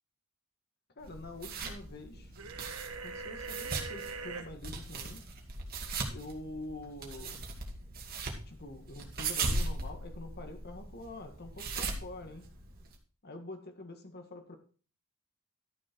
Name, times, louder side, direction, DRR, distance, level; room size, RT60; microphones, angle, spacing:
voice 1, 1.0-2.3 3.0-5.2 6.1-7.5 8.4-12.5 13.2-14.6, left 2 dB, 50° left, 1.8 m, -46 dB
sound 1, 1.0-12.9, right 3 dB, 45° right, 2.2 m, -39 dB
sound 2, 2.4-4.5, right 4 dB, 70° right, 1.3 m, -42 dB
12.5 x 6.5 x 4.6 m
head